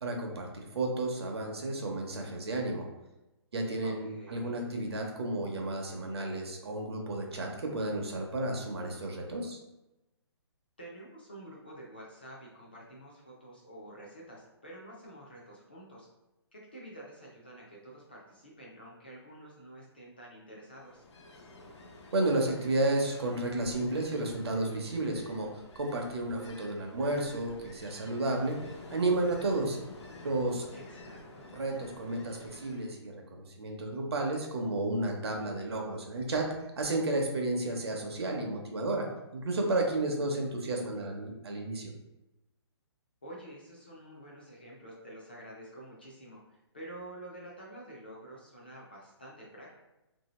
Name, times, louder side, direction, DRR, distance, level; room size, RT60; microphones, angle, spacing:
voice 1, 0.0-2.9 3.5-9.6 22.1-28.6 28.9-29.8 30.2-30.7 31.5-36.5 36.8-39.1 39.3-41.9, right 2 dB, 65° right, 1 dB, 0.6 m, -32 dB
voice 2, 3.8-4.7 10.8-16.1 16.5-21.0 30.7-31.5 43.2-49.7, right 1 dB, 20° left, -5 dB, 0.3 m, -49 dB
Ocean, 20.8-33.0, left 2 dB, 80° left, 0.6 m, -50 dB
2.9 x 2.7 x 2.9 m, 0.99 s
hypercardioid pair, 180°, 14 cm